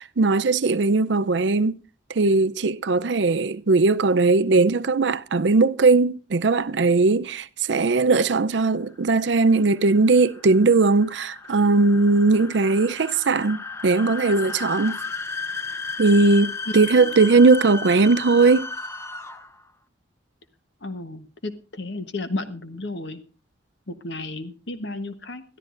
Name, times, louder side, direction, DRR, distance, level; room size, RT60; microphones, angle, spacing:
voice 1, 0.0-1.7 2.1-15.0 16.0-18.7, right 3 dB, 70° right, 0.6 m, -19 dB
sound 1, 9.0-19.6, left 4 dB, 15° left, 0.7 m, -34 dB
voice 2, 20.8-23.2 23.9-25.4, left 2 dB, 70° left, 1.1 m, -33 dB
21.5 x 13.0 x 2.5 m
head